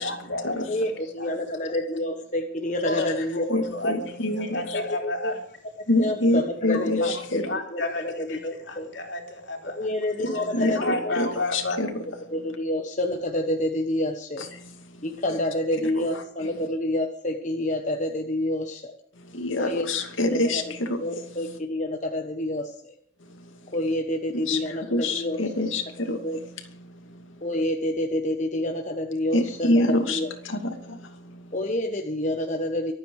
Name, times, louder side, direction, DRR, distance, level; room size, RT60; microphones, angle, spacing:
voice 1, 0.0-0.9 1.2-1.4 2.8-5.4 6.7-7.1 7.4-9.9 10.2-11.8, left 2 dB, 60° left, 3 dB, 3.6 m, -31 dB
voice 2, 0.7-3.4 4.7-5.3 6.0-7.1 7.7-8.9 9.8-11.2 12.3-14.5 15.0-18.9 19.6-19.9 20.3-22.9 23.7-25.4 26.2-26.4 27.4-30.3 31.5-32.9, left 1 dB, 35° left, 4 dB, 1.2 m, -28 dB
voice 3, 3.5-4.8 5.9-7.4 10.2-11.9 16.0-16.1 19.3-21.0 24.5-26.4 29.3-31.1 31.3-31.4, left 1 dB, 75° left, 4 dB, 2.7 m, -26 dB
24.5 x 9.2 x 4.9 m, 0.64 s
head